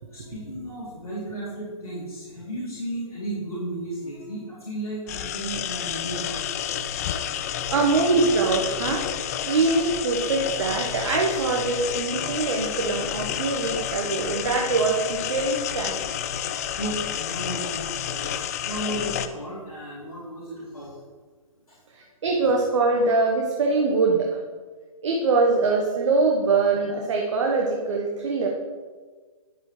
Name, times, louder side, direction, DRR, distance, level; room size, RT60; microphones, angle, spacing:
voice 1, 0.1-6.4 16.7-21.0 21.7-22.1, right 1 dB, 80° left, -8 dB, 3.0 m, -34 dB
sound 1, 5.1-19.3, left 9 dB, 25° left, 0.4 m, -30 dB
voice 2, 7.3-9.1 9.5-16.0 21.9-24.4 25.0-28.5, right 3 dB, 55° right, 0 dB, 1.2 m, -23 dB
10.5 x 8.2 x 3.2 m, 1.4 s
figure-of-eight pair, 130°, 19 cm